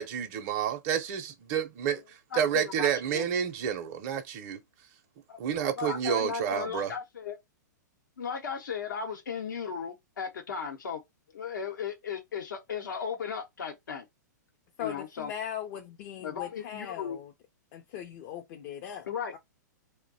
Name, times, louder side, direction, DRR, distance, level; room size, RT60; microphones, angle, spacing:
voice 1, 0.0-4.6 5.4-6.9, right 8 dB, 45° right, 0.6 m, -30 dB
voice 2, 2.3-3.2 5.3-5.4 5.8-7.4 8.2-11.0 11.3-14.1 14.8-15.3 16.2-17.2 19.1-19.3, left 7 dB, 80° left, 0.8 m, -36 dB
voice 3, 14.8-17.3 17.7-19.1 19.3-19.4, left 9 dB, 45° left, 0.5 m, -39 dB
2.6 x 2.1 x 3.9 m
hypercardioid pair, 120°, 10 cm